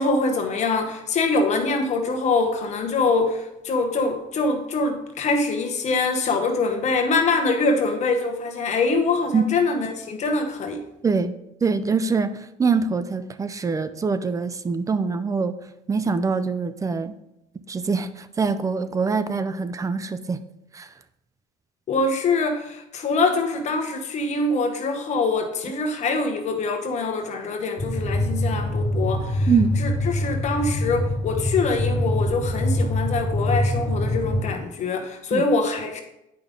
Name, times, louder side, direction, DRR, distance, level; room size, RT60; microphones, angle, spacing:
voice 1, 0.0-10.9 21.9-29.5 29.8-36.0, left 3 dB, 50° left, 5 dB, 1.1 m, -24 dB
voice 2, 11.6-15.5 15.9-17.1 17.7-20.4 20.7-20.9 29.5-29.8 35.3-35.4, right 5 dB, 20° right, 12 dB, 0.5 m, -24 dB
sound 1, 27.8-34.5, left 1 dB, 35° left, 1.5 m, -24 dB
9.0 x 5.2 x 3.6 m, 0.84 s
cardioid pair, 110°, 15 cm